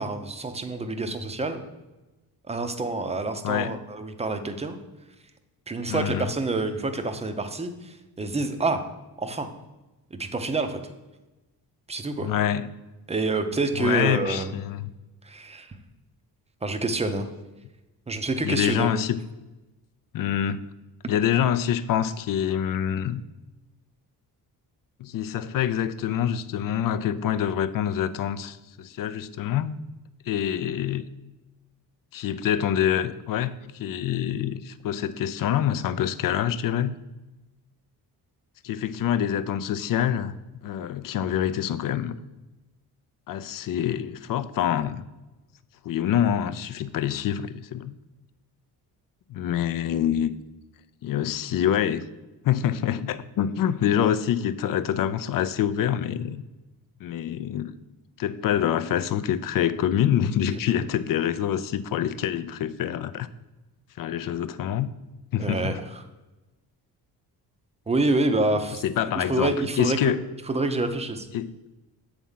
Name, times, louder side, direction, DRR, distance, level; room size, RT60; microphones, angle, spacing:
voice 1, 0.0-1.6 2.5-4.8 5.7-8.8 9.2-9.5 10.2-10.8 11.9-12.3 13.1-14.5 15.2-15.8 16.6-17.3 18.1-18.9 65.4-66.0 67.9-68.8 69.1-70.1 70.5-71.3, right 2 dB, 15° right, 7 dB, 0.6 m, -27 dB
voice 2, 5.9-6.3 12.2-12.7 13.8-14.9 18.4-19.2 20.1-20.6 21.1-23.2 25.0-29.8 30.3-31.0 32.1-36.9 38.6-40.4 40.6-42.2 43.3-45.0 45.8-47.9 49.3-50.3 51.0-52.0 52.4-56.4 57.0-57.8 58.2-63.3 64.0-64.9 65.3-65.8 68.8-70.2 71.3-71.5, left 10 dB, 55° left, 14 dB, 0.5 m, -26 dB
7.3 x 3.6 x 5.5 m, 1.1 s
cardioid pair, 100°, 39 cm